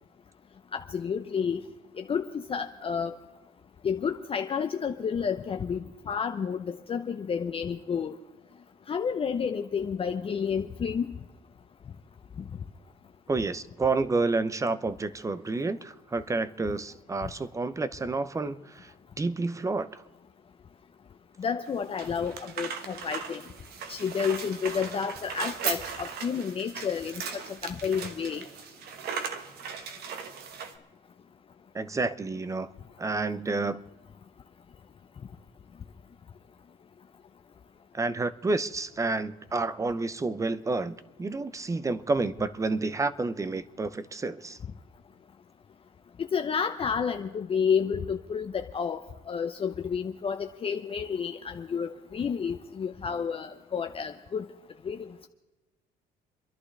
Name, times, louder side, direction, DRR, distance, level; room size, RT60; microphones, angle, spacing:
voice 1, 0.7-1.6 2.0-3.2 3.8-8.1 8.9-11.1 21.4-23.4 23.9-28.4 46.2-49.0 49.3-54.5 54.8-55.1, left 6 dB, 35° left, 7 dB, 0.7 m, -30 dB
voice 2, 13.3-18.9 19.2-20.0 31.7-32.7 33.0-33.8 37.9-44.6, right 3 dB, 20° right, 15 dB, 0.7 m, -29 dB
sound 1, 21.7-30.8, right 6 dB, 70° right, 1.4 m, -38 dB
29.0 x 11.5 x 3.3 m, 1.1 s
cardioid pair, 110°, 17 cm